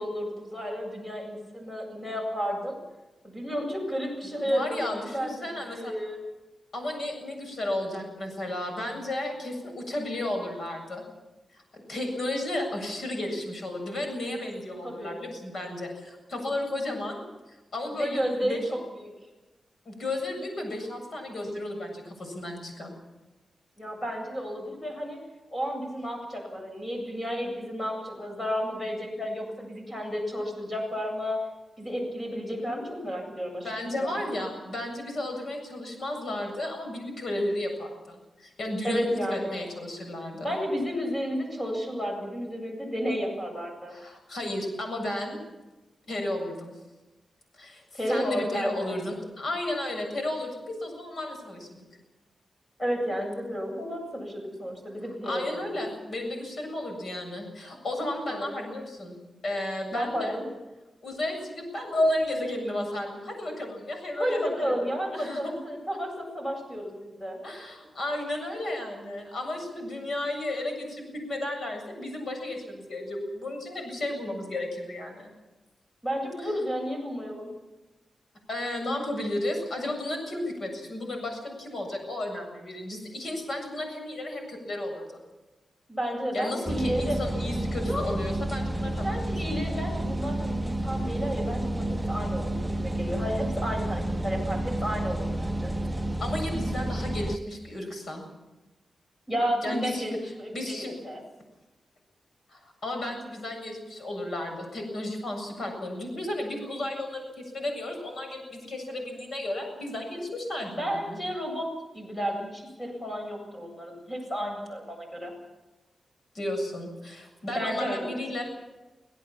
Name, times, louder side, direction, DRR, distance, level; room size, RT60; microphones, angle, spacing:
voice 1, 0.0-2.8 3.2-6.2 14.8-15.3 17.9-19.1 23.8-25.2 25.5-31.4 31.8-33.7 34.0-34.2 38.8-39.6 40.4-43.9 47.9-48.9 52.8-55.8 58.3-58.5 59.9-60.5 64.2-67.4 76.0-77.5 85.9-87.2 87.8-88.2 89.0-95.7 99.3-101.2 110.7-115.3 117.5-118.2, equal, 20° left, 2 dB, 8.0 m, -32 dB
voice 2, 4.4-5.9 6.7-11.0 11.5-17.2 17.7-18.6 19.9-22.9 33.6-40.6 43.9-45.4 46.1-46.7 47.6-51.8 55.2-59.2 59.4-60.4 61.0-65.5 67.4-75.3 76.4-76.5 78.5-85.2 86.3-89.2 96.2-98.2 99.6-100.9 102.5-111.2 116.3-118.4, left 1 dB, 60° left, 3 dB, 7.6 m, -33 dB
sound 1, 86.7-97.4, right 1 dB, 10° right, 0.7 m, -30 dB
25.5 x 17.0 x 7.4 m, 1.1 s
wide cardioid pair, 110°, 0 cm